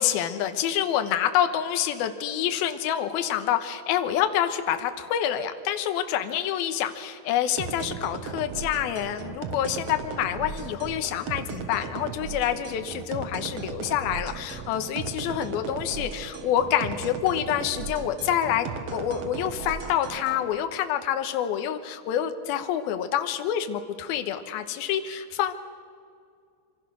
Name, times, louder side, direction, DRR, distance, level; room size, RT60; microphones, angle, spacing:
voice 1, 0.0-18.7 18.9-25.5, left 10 dB, 70° left, 8 dB, 2.9 m, -27 dB
sound 1, 7.6-20.5, right 6 dB, 65° right, 1.6 m, -36 dB
26.0 x 26.0 x 6.3 m, 2.2 s
omnidirectional pair, 4.7 m